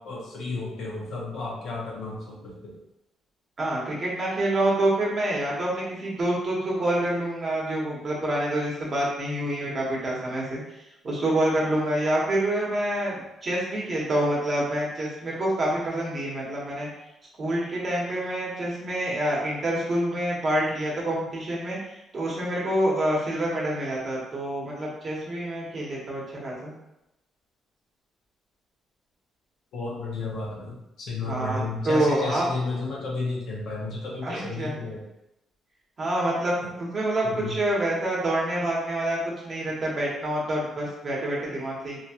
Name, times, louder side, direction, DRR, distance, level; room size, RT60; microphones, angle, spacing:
voice 1, 0.0-2.7 29.7-35.0 36.6-36.7 37.2-37.5, left 3 dB, 75° left, -4 dB, 0.9 m, -32 dB
voice 2, 3.6-16.9 17.4-26.7 31.2-31.6 31.8-32.4 34.2-34.8 36.0-42.0, right 1 dB, 40° right, -4 dB, 1.1 m, -27 dB
2.9 x 2.3 x 2.8 m, 0.89 s
cardioid pair, 90°, 0 cm